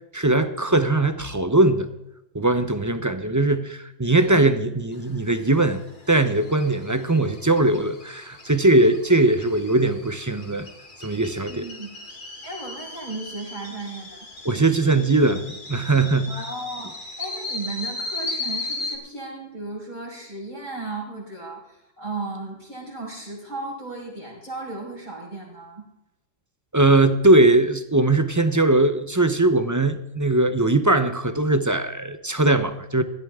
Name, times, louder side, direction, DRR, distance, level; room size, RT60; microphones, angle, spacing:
voice 1, 0.1-1.9 2.3-5.8 6.1-10.7 11.0-11.7 14.4-16.4 26.7-33.0, right 2 dB, 20° right, 10 dB, 0.7 m, -20 dB
sound 1, 4.9-19.0, left 2 dB, 45° left, 2.0 m, -37 dB
voice 2, 11.5-11.9 12.4-14.3 16.3-25.8, right 2 dB, 40° right, -4 dB, 5.5 m, -35 dB
16.5 x 12.5 x 3.7 m, 0.89 s
omnidirectional pair, 1.2 m